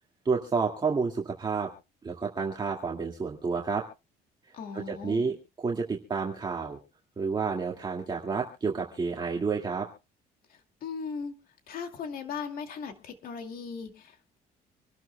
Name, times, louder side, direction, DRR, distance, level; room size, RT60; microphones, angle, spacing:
voice 1, 0.3-1.7 2.0-3.9 4.7-6.8 7.2-9.9, right 5 dB, 25° right, 0 dB, 2.0 m, -30 dB
voice 2, 4.5-5.3 10.5-11.3 11.7-14.4, left 5 dB, 60° left, 6 dB, 2.3 m, -38 dB
26.5 x 12.5 x 2.2 m, 0.30 s
cardioid pair, 110°, 17 cm